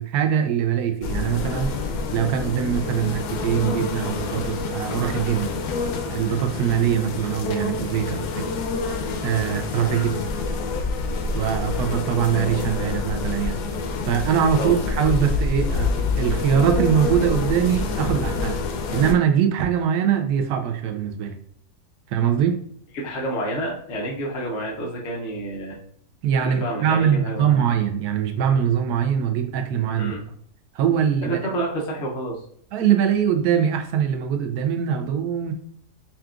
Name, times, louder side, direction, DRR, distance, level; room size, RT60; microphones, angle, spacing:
voice 1, 0.0-1.7 2.1-5.5 6.1-8.4 9.2-10.1 11.3-13.6 14.0-15.9 16.2-21.3 22.1-22.6 26.2-30.1 30.7-31.4 32.7-35.5, right 8 dB, 75° right, 6 dB, 1.1 m, -22 dB
sound 1, 1.0-19.1, left 4 dB, 85° left, 1.1 m, -27 dB
voice 2, 22.9-25.8 26.4-27.6 30.0-30.2 31.2-32.4, right 1 dB, 55° left, -2 dB, 0.9 m, -29 dB
5.6 x 2.4 x 2.4 m, 0.62 s
omnidirectional pair, 1.7 m